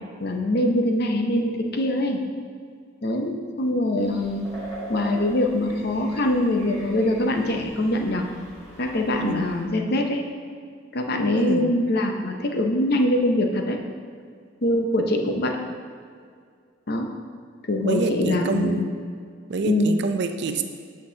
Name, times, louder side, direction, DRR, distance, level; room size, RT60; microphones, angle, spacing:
voice 1, 0.2-2.2 3.0-4.5 4.9-8.3 8.8-10.2 10.9-13.8 14.6-15.6 16.9-17.1 17.7-18.9 19.6-19.9, left 1 dB, 50° left, 3 dB, 0.7 m, -23 dB
sound 1, 4.0-9.6, right 1 dB, 15° left, 1.6 m, -42 dB
voice 2, 11.3-11.7 17.8-18.9 19.5-20.6, right 3 dB, 60° right, 7 dB, 0.4 m, -26 dB
8.5 x 6.0 x 2.8 m, 2.1 s
head